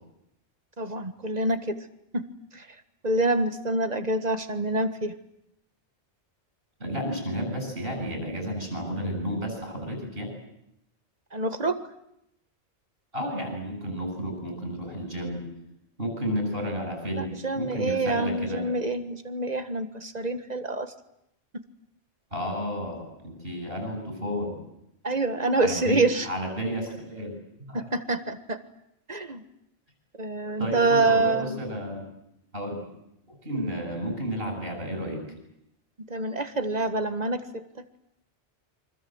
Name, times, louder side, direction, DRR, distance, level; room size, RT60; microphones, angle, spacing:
voice 1, 0.8-1.6 2.1-2.2 3.0-5.1 11.3-11.8 17.1-20.9 25.0-26.3 27.7-28.6 29.1-29.4 30.2-31.6 36.1-37.6, right 2 dB, 40° right, 10 dB, 1.7 m, -26 dB
voice 2, 6.8-10.3 13.1-15.5 16.0-18.6 22.3-24.6 25.5-27.3 27.7-27.9 30.6-32.0 32.5-32.9 33.3-35.3, equal, 55° right, 4 dB, 8.4 m, -32 dB
28.5 x 25.0 x 8.0 m, 0.80 s
omnidirectional pair, 1.1 m